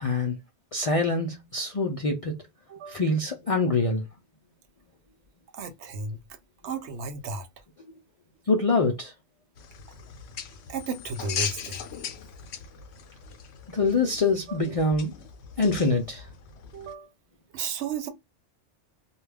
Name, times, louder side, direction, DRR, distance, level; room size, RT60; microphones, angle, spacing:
voice 1, 0.0-0.4 0.7-2.4 2.9-4.0 8.5-9.1 13.7-15.2 15.6-16.3, left 3 dB, 60° left, 0.3 m, -25 dB
voice 2, 2.7-3.0 5.5-6.2 6.6-7.5 10.7-11.8 14.5-14.8 16.7-17.1 17.5-18.1, right 5 dB, 75° right, 0.9 m, -34 dB
sound 1, 9.6-16.9, left 7 dB, 75° left, 0.8 m, -39 dB
2.3 x 2.2 x 3.2 m
omnidirectional pair, 1.2 m